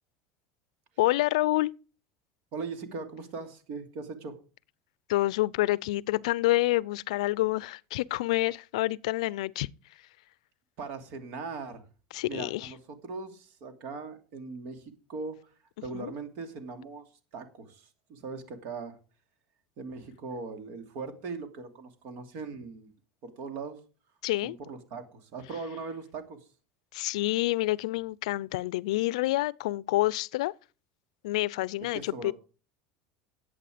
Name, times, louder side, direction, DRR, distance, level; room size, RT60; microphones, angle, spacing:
voice 1, 1.0-1.7 5.1-9.7 12.1-12.7 15.9-16.1 24.2-24.6 26.9-30.5 31.2-32.3, left 18 dB, 85° left, 0.4 m, -28 dB
voice 2, 2.5-4.4 10.8-11.8 12.3-15.5 15.8-17.0 17.3-19.0 19.8-22.9 23.2-23.8 24.4-26.5 31.9-32.3, right 4 dB, 65° right, 2.7 m, -40 dB
11.5 x 8.4 x 5.0 m
supercardioid pair, 105°, 3 cm